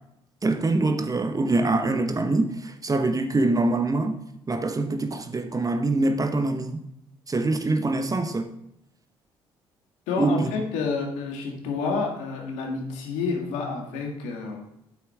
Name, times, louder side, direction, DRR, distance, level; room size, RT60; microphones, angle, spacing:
voice 1, 0.4-4.2 4.5-6.8 7.3-8.5 10.2-10.5, right 2 dB, 30° right, 1.1 m, -24 dB
voice 2, 10.1-14.6, left 4 dB, 75° left, 1.7 m, -29 dB
9.0 x 7.7 x 3.6 m
hypercardioid pair, 45°, 13 cm